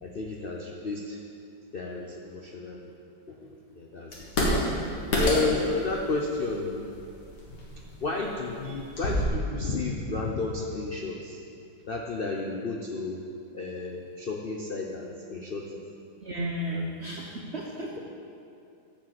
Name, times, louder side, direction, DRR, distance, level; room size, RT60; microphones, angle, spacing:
voice 1, 0.0-1.2 1.7-2.9 3.3-4.1 5.2-6.8 8.0-11.4 11.9-13.2 13.5-15.8 16.7-16.9, left 3 dB, 85° left, 0 dB, 0.5 m, -32 dB
sound 1, 4.1-9.3, left 1 dB, 60° left, 2.3 m, -30 dB
voice 2, 16.2-18.0, equal, 50° right, -2 dB, 0.8 m, -33 dB
11.5 x 5.1 x 7.6 m, 2.5 s
omnidirectional pair, 2.1 m